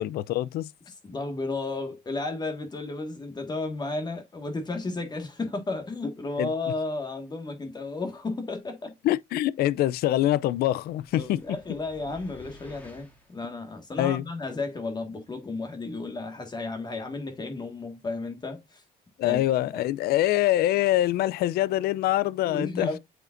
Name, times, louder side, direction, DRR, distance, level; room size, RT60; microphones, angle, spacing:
voice 1, 0.0-0.7 6.4-6.5 9.0-11.4 14.0-14.2 19.2-23.0, left 14 dB, 65° left, 0.4 m, -24 dB
voice 2, 0.9-8.9 11.1-18.8 19.2-19.4 19.7-19.8 22.4-23.0, left 3 dB, 25° left, 1.6 m, -33 dB
sound 1, 10.8-13.4, left 1 dB, 10° left, 2.4 m, -52 dB
7.6 x 5.0 x 2.5 m
cardioid pair, 110°, 17 cm